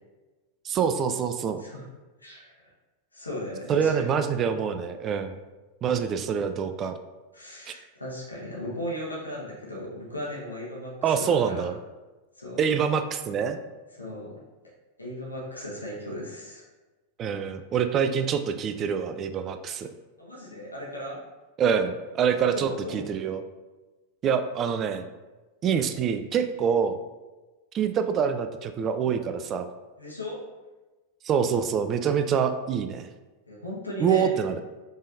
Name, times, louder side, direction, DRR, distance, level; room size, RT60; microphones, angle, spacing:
voice 1, 0.6-1.6 3.7-5.3 5.8-7.0 7.7-7.8 11.0-11.7 12.6-13.6 17.2-19.9 21.6-23.4 24.2-25.1 25.6-27.0 27.7-29.7 31.2-33.1 34.0-34.6, right 7 dB, 30° right, 9 dB, 0.3 m, -25 dB
voice 2, 2.2-2.7 3.1-4.0 7.3-11.6 12.4-12.7 13.9-14.4 15.0-16.6 20.2-21.2 22.5-23.0 30.0-30.4 33.5-34.3, left 1 dB, 85° left, -4 dB, 1.2 m, -37 dB
5.3 x 3.4 x 2.6 m, 1.2 s
figure-of-eight pair, 90°, 0 cm